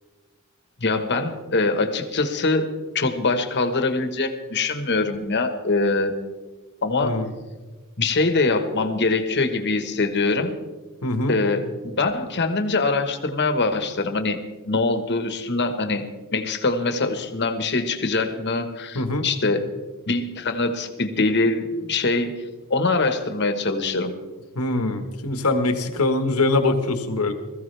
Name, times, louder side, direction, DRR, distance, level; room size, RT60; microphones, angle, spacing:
voice 1, 0.8-2.7 2.9-6.1 6.8-7.2 8.0-10.5 11.3-14.4 14.6-19.7 20.1-24.1, left 3 dB, 50° left, 7 dB, 1.4 m, -23 dB
voice 2, 11.0-11.3 18.9-19.2 24.5-27.3, left 2 dB, 80° left, 6 dB, 1.6 m, -23 dB
21.0 x 15.0 x 3.4 m, 1.3 s
head